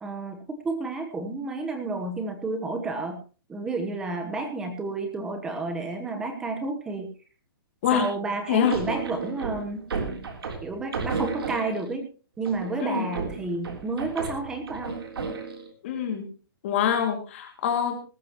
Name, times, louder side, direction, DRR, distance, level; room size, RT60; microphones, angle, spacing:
voice 1, 0.0-3.2 3.5-7.1 7.9-9.8 10.6-12.1 12.4-15.0, right 3 dB, 5° right, 6 dB, 1.1 m, -31 dB
sound 1, 8.7-12.0 12.5-15.7, right 4 dB, 90° right, 3.6 m, -33 dB
voice 2, 15.8-16.3 16.6-17.9, left 8 dB, 30° left, 4 dB, 2.5 m, -25 dB
19.5 x 13.0 x 3.1 m, 0.36 s
hypercardioid pair, 180°, 12 cm